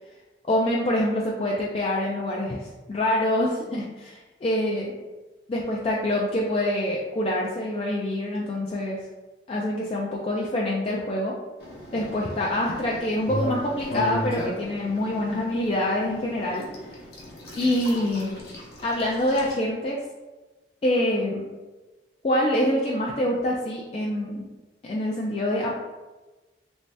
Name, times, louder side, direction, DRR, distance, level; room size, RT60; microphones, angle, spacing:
voice 1, 0.4-4.9 5.5-9.0 9.5-11.3 11.9-16.7 17.6-18.4 18.8-20.0 20.8-21.5 22.2-24.5 24.8-25.8, left 1 dB, 30° left, -3 dB, 0.3 m, -25 dB
sound 1, 11.6-19.5, equal, 60° left, 0.8 m, -36 dB
3.1 x 2.6 x 3.3 m, 1.2 s
head